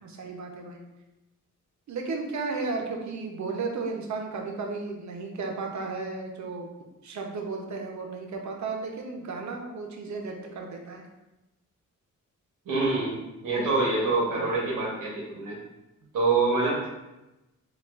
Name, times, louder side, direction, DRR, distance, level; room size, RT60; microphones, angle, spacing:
voice 1, 0.0-0.8 1.9-6.7 7.0-11.1, right 4 dB, 65° right, 2 dB, 0.7 m, -34 dB
voice 2, 12.7-13.2 13.4-15.5 16.1-16.9, right 3 dB, 85° right, -4 dB, 1.1 m, -25 dB
6.8 x 2.4 x 2.4 m, 0.98 s
wide cardioid pair, 155°, 31 cm